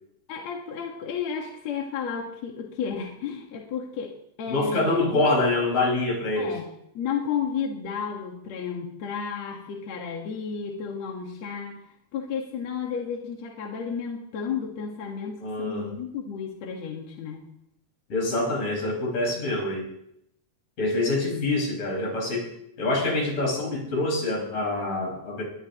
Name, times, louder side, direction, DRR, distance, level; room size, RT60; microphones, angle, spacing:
voice 1, 0.3-4.1 4.4-5.2 6.4-6.7 6.9-11.8 12.1-17.4 21.3-21.5, left 6 dB, 60° left, 1 dB, 2.7 m, -32 dB
voice 2, 4.5-6.6 15.4-15.9 18.1-19.9 20.8-22.5 22.8-25.4, left 2 dB, 80° left, -1 dB, 6.8 m, -25 dB
21.5 x 21.0 x 3.0 m, 0.77 s
omnidirectional pair, 3.6 m